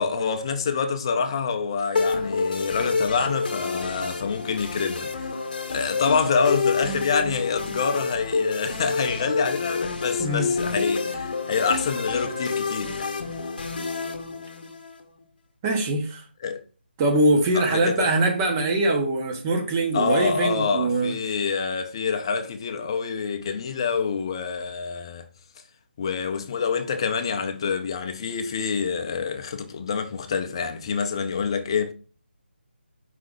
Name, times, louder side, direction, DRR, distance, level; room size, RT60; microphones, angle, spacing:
voice 1, 0.0-5.4 5.7-13.1 16.4-16.6 17.5-18.1 19.9-25.2 26.0-31.9, left 5 dB, 25° left, 0.5 m, -26 dB
sound 1, 2.0-15.0, left 4 dB, 50° left, 0.9 m, -28 dB
voice 2, 10.2-10.5 15.6-16.2 17.0-21.1, right 2 dB, 15° right, 0.7 m, -22 dB
5.0 x 2.8 x 3.6 m
figure-of-eight pair, 165°, 6 cm